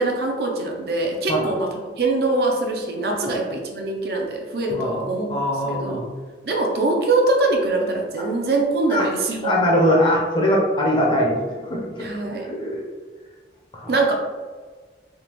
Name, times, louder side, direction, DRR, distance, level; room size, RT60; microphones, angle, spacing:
voice 1, 0.0-1.7 2.0-5.3 5.7-6.0 6.4-9.5 12.0-12.5 13.9-14.1, right 2 dB, 55° right, 1 dB, 0.6 m, -23 dB
voice 2, 4.7-5.0 5.3-6.0 8.9-9.1 9.4-12.7 13.7-14.0, equal, 25° left, -2 dB, 0.7 m, -22 dB
3.6 x 2.9 x 3.0 m, 1.5 s
head